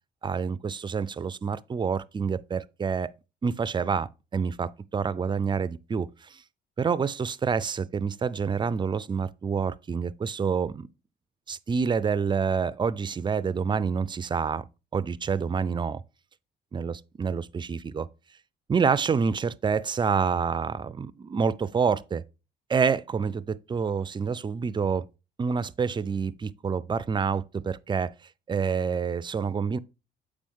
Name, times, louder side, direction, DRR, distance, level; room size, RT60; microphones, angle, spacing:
voice 1, 0.2-3.1 3.4-6.4 6.8-10.9 11.5-14.6 14.9-16.0 16.7-18.1 18.7-22.2 22.7-25.1 25.4-28.1 28.5-29.8, right 6 dB, 25° right, 0.4 m, -27 dB
7.5 x 4.9 x 3.6 m
cardioid pair, 90°, 20 cm